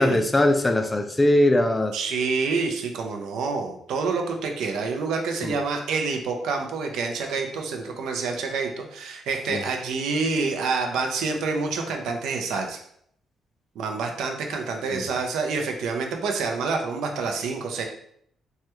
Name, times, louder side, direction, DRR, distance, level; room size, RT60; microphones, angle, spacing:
voice 1, 0.0-1.9 5.4-5.5 9.5-9.6 14.9-15.1, left 1 dB, 20° left, 7 dB, 0.3 m, -21 dB
voice 2, 1.9-12.8 13.8-17.8, right 4 dB, 80° right, 3 dB, 0.5 m, -27 dB
3.2 x 2.2 x 2.9 m, 0.68 s
cardioid pair, 90°, 0 cm